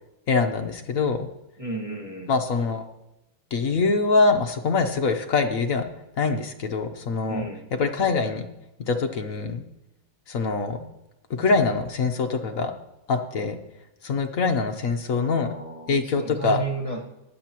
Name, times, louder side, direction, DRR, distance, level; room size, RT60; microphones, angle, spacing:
voice 1, 0.3-1.3 2.3-2.8 3.5-5.9 6.2-7.4 7.8-8.5 8.9-9.6 10.3-10.9 11.3-12.7 13.1-13.6 14.0-15.5 15.9-16.6, left 4 dB, 55° left, 5 dB, 1.0 m, -24 dB
voice 2, 1.6-2.3 7.3-7.6 15.1-17.0, right 3 dB, 20° right, -3 dB, 1.4 m, -33 dB
22.0 x 7.8 x 3.0 m, 0.93 s
omnidirectional pair, 2.2 m